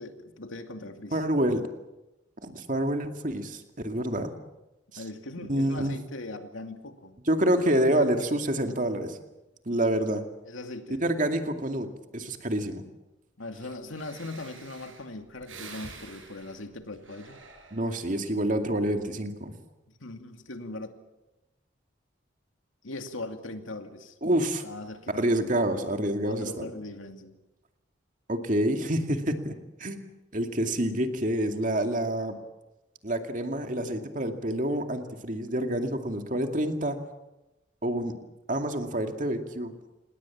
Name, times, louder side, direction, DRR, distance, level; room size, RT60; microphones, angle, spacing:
voice 1, 0.0-1.2 5.0-7.2 10.5-11.0 13.4-17.4 19.9-20.9 22.8-25.2 26.2-27.3, left 2 dB, 90° left, 6 dB, 2.5 m, -40 dB
voice 2, 1.1-1.7 2.4-4.3 4.9-5.0 5.5-6.0 7.3-9.2 9.7-10.2 11.0-12.8 17.7-19.5 24.2-24.6 25.1-26.7 28.3-29.5 29.8-30.0 30.3-32.4 33.0-37.0 37.8-38.2 38.5-39.7, right 1 dB, 40° right, 5 dB, 2.4 m, -27 dB
Breathing, 13.6-13.7 13.9-18.2 18.6-19.0, right 4 dB, 85° right, 6.5 m, -48 dB
27.5 x 20.0 x 7.4 m, 0.98 s
head